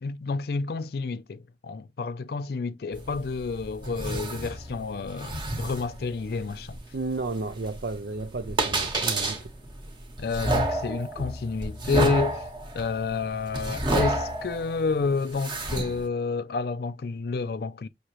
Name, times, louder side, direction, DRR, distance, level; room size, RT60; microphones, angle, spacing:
voice 1, 0.0-6.8 10.2-12.5 12.7-17.9, left 4 dB, 60° left, 0.4 m, -29 dB
sound 1, 2.9-16.1, right 1 dB, 25° right, 1.0 m, -31 dB
voice 2, 6.9-9.5, right 3 dB, 60° right, 0.5 m, -33 dB
6.1 x 2.8 x 3.0 m
head